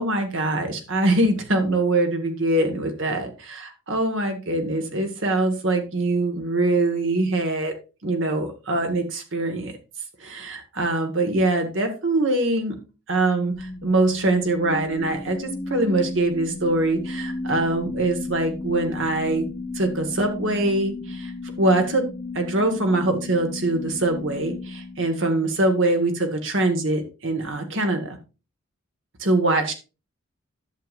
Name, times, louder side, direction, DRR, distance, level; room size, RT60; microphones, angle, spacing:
voice 1, 0.0-7.7 8.0-9.7 10.2-12.7 13.1-19.5 19.7-21.3 21.6-22.0 22.3-28.2 29.2-29.7, right 2 dB, 65° right, 5 dB, 1.7 m, -23 dB
sound 1, 13.5-25.7, left 3 dB, 10° right, 5.1 m, -34 dB
11.5 x 7.0 x 2.5 m, 0.31 s
head